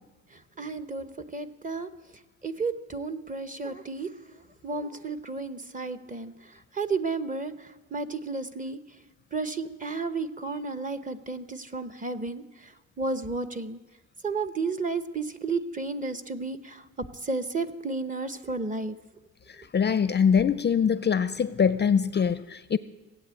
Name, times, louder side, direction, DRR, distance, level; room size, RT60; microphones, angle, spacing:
voice 1, 0.6-1.9 2.4-4.4 4.6-6.3 6.7-8.8 9.3-12.7 13.0-13.8 14.2-19.0, right 3 dB, 25° right, 0.9 m, -32 dB
voice 2, 19.7-22.8, left 7 dB, 35° left, 0.5 m, -23 dB
17.5 x 8.4 x 8.3 m
cardioid pair, 105°, 31 cm